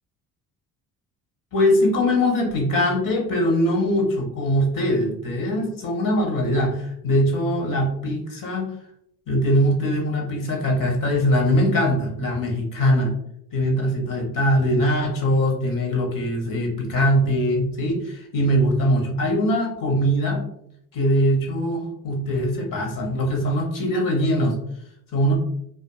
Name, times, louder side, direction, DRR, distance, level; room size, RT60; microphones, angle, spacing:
voice 1, 1.5-8.7 9.3-13.1 13.5-20.4 20.9-24.6 25.1-25.4, equal, 50° left, 1 dB, 1.0 m, -22 dB
2.5 x 2.5 x 2.3 m, 0.72 s
hypercardioid pair, 55°, 42 cm